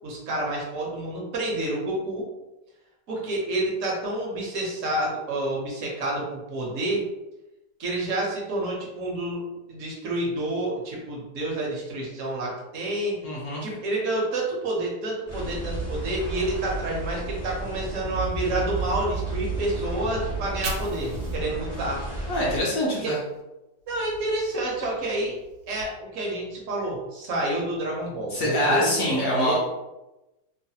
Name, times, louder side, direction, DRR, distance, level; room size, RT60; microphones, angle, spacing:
voice 1, 0.0-2.3 3.1-7.0 7.8-9.4 9.7-13.2 13.6-22.0 23.0-23.1 23.9-25.4 25.7-29.6, right 1 dB, 55° right, -3 dB, 0.9 m, -29 dB
voice 2, 13.2-13.6 22.3-23.2 28.3-29.6, equal, 70° left, -5 dB, 0.8 m, -24 dB
sound 1, 15.3-22.6, right 3 dB, 45° left, 0.5 m, -32 dB
Fire, 20.3-23.4 23.8-25.8, right 2 dB, 85° right, 1.4 m, -42 dB
3.1 x 2.2 x 2.7 m, 1.0 s
omnidirectional pair, 2.0 m